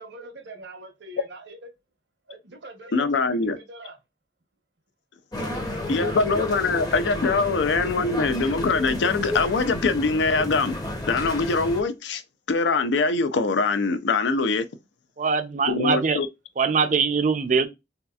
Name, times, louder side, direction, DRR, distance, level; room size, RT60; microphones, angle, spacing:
voice 1, 0.0-1.7 2.3-3.1 3.4-4.0 5.3-6.5 6.8-7.4, right 2 dB, 65° right, 0.8 m, -43 dB
voice 2, 2.9-3.6 5.9-10.8 11.1-12.2 12.5-14.7 15.7-16.3, left 4 dB, 75° left, 0.4 m, -23 dB
sound 1, 5.3-11.8, left 1 dB, 20° left, 0.6 m, -32 dB
voice 3, 15.2-16.2 16.6-17.7, right 5 dB, 40° right, 0.4 m, -22 dB
3.9 x 2.8 x 2.3 m
head